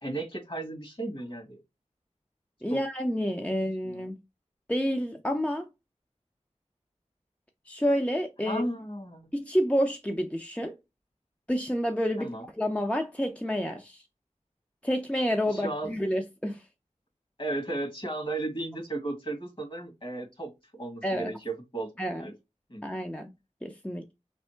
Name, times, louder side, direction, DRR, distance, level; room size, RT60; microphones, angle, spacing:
voice 1, 0.0-1.6 2.7-2.8 3.9-4.0 8.5-9.2 12.2-12.4 15.5-15.9 17.4-21.9 22.2-22.3 22.7-22.8, right 2 dB, 45° left, 1.9 m, -34 dB
voice 2, 2.6-4.2 4.7-5.7 7.7-8.6 9.3-10.7 11.5-14.0 14.8-16.6 21.0-21.3 22.0-22.3 22.8-23.3 23.6-24.1, equal, 10° left, 0.6 m, -29 dB
3.5 x 3.3 x 4.4 m
wide cardioid pair, 50°, 13 cm